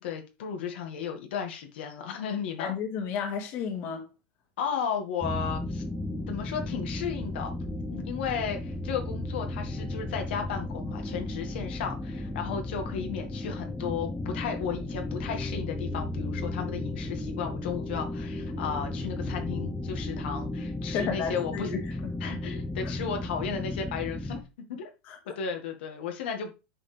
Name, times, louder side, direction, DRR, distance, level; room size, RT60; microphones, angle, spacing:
voice 1, 0.0-2.7 4.6-5.8 6.3-7.5 7.9-21.7 22.2-24.9 25.4-26.5, left 7 dB, 75° left, 1.8 m, -34 dB
voice 2, 2.6-4.1 20.9-21.8 22.8-22.9 25.1-25.3, left 6 dB, 40° left, 1.9 m, -32 dB
sound 1, 5.2-24.4, left 2 dB, 5° left, 0.7 m, -34 dB
9.7 x 4.9 x 3.4 m
supercardioid pair, 170°, 6 cm